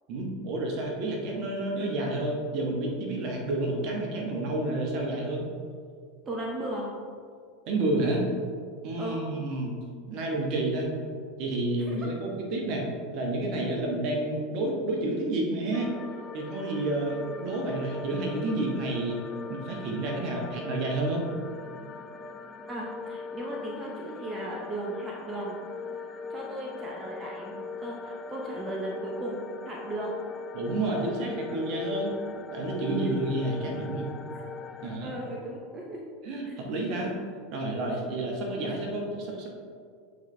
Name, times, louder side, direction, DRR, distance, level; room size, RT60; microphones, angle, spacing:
voice 1, 0.1-5.5 7.7-8.2 8.8-9.7 10.1-10.9 11.4-12.8 13.1-15.9 16.3-19.2 19.5-21.2 30.5-32.1 32.5-34.1 34.8-35.1 36.2-37.1 37.5-39.5, right 2 dB, 50° right, 0 dB, 1.2 m, -30 dB
voice 2, 6.2-6.9 9.0-9.2 11.9-12.0 22.7-25.6 26.3-30.1 31.9-32.0 34.3-34.4 35.0-36.0 36.5-36.6 38.7-38.8, right 1 dB, 25° right, -2 dB, 0.9 m, -36 dB
sound 1, 15.7-35.0, left 4 dB, 25° left, 0.4 m, -40 dB
7.7 x 4.0 x 3.3 m, 2.1 s
hypercardioid pair, 85°, 0 cm